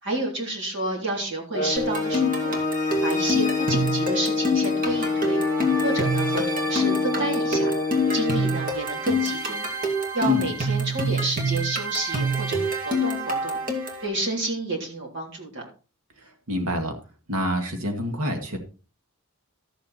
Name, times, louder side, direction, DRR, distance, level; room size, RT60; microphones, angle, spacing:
voice 1, 0.0-2.6 3.0-5.4 5.8-7.7 8.1-9.7 10.1-13.6 14.0-15.6, right 2 dB, 55° right, -1 dB, 3.4 m, -30 dB
sound 1, 1.5-8.6, left 3 dB, 40° left, 1.0 m, -26 dB
sound 2, 1.8-14.1, equal, 40° right, 2.4 m, -26 dB
voice 2, 16.2-17.0 17.3-18.6, equal, 85° right, 4 dB, 2.1 m, -27 dB
13.0 x 7.2 x 4.2 m, 0.35 s
head